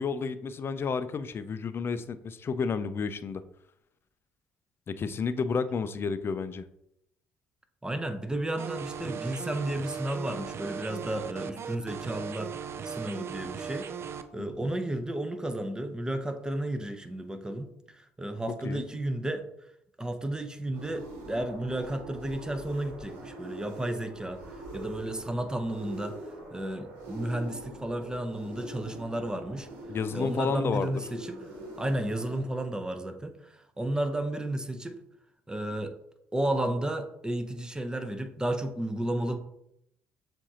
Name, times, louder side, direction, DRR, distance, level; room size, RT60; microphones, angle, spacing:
voice 1, 0.0-3.4 4.9-6.6 14.4-14.7 18.6-18.8 29.9-30.9, left 5 dB, 40° left, 12 dB, 0.4 m, -31 dB
voice 2, 7.8-12.5 12.8-13.9 14.3-19.5 20.0-26.2 26.5-29.7 30.1-31.4 31.8-35.0 35.5-35.9 36.3-39.4, right 1 dB, 15° right, 7 dB, 0.7 m, -33 dB
sound 1, 8.6-14.2, right 7 dB, 45° right, 0.4 m, -38 dB
sound 2, 20.7-32.4, right 1 dB, 75° right, 1.2 m, -44 dB
7.2 x 2.6 x 2.8 m, 0.77 s
hypercardioid pair, 55°, 6 cm